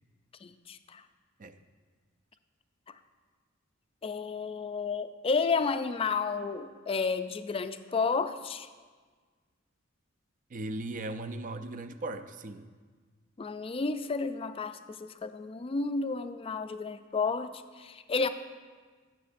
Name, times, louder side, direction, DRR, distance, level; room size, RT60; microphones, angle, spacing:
voice 1, 0.4-1.0 4.0-8.7 13.4-18.3, left 4 dB, 25° left, 10 dB, 0.4 m, -31 dB
voice 2, 10.5-12.7, right 2 dB, 40° right, 10 dB, 0.4 m, -38 dB
16.0 x 7.2 x 2.5 m, 1.5 s
head